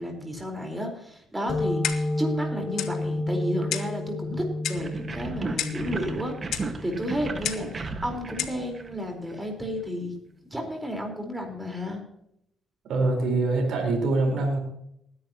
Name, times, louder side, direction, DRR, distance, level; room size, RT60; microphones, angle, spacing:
voice 1, 0.0-10.1 10.5-12.0, equal, 15° right, 3 dB, 4.4 m, -32 dB
sound 1, 1.5-8.8, left 1 dB, 40° left, 6.1 m, -32 dB
Clock, 1.8-2.2 2.8-3.0 3.7-4.0 4.6-4.9 5.6-5.9 6.5-6.7 7.4-7.7 8.4-8.6, left 10 dB, 80° left, 1.1 m, -31 dB
sound 2, 4.8-9.4, right 3 dB, 35° right, 1.6 m, -35 dB
voice 2, 12.8-14.6, right 3 dB, 75° right, 1 dB, 4.4 m, -24 dB
20.0 x 10.5 x 3.0 m, 0.73 s
cardioid pair, 90°, 0 cm